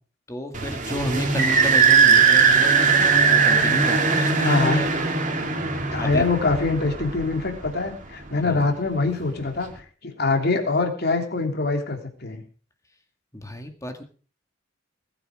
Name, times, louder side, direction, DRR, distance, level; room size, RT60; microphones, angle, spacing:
voice 1, 0.3-4.9 6.0-6.2 8.4-8.7 13.3-14.0, equal, 15° left, 5 dB, 2.0 m, -31 dB
sound 1, 0.5-7.9, right 5 dB, 40° right, 2.5 m, -20 dB
voice 2, 4.4-4.8 5.9-12.4, left 3 dB, 55° left, 4 dB, 3.3 m, -24 dB
20.0 x 9.9 x 4.9 m, 0.41 s
head